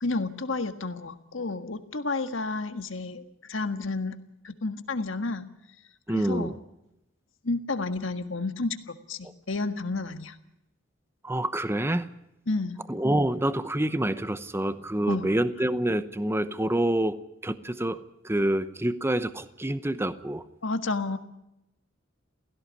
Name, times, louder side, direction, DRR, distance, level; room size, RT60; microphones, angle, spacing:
voice 1, 0.0-4.1 4.4-5.5 6.1-6.6 7.4-10.4 12.5-12.8 15.1-15.3 20.6-21.2, left 3 dB, 70° left, 9 dB, 1.6 m, -31 dB
voice 2, 6.1-6.6 9.2-9.3 11.2-12.1 12.9-18.0 18.2-20.4, right 1 dB, 10° right, 12 dB, 0.8 m, -27 dB
16.5 x 16.5 x 9.5 m, 0.87 s
head